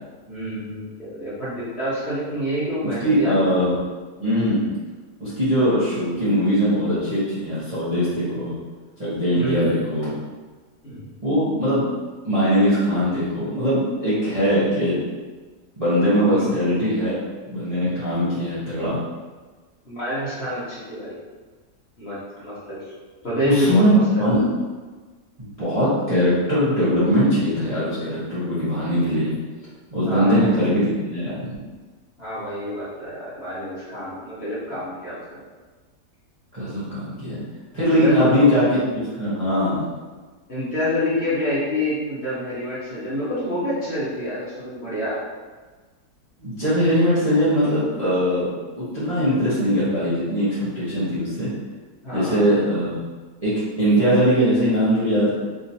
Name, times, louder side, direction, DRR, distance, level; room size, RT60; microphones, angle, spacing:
voice 1, 0.3-3.6 9.3-9.8 10.8-11.1 16.2-16.5 19.8-21.1 22.0-22.8 23.2-24.3 30.0-30.6 32.2-35.4 37.9-38.5 40.5-45.2 52.0-52.5, equal, 40° left, -11 dB, 1.3 m, -27 dB
voice 2, 3.0-3.7 4.2-4.6 5.2-8.5 9.0-10.1 11.2-11.9 12.2-15.0 15.8-17.1 17.5-19.0 23.4-24.4 25.4-29.3 29.9-31.5 36.5-37.4 37.7-39.9 46.4-48.5 48.7-51.5 52.1-53.0 53.4-53.5 53.8-55.3, equal, 25° right, -12 dB, 0.8 m, -21 dB
3.7 x 2.9 x 2.7 m, 1.3 s
omnidirectional pair, 1.8 m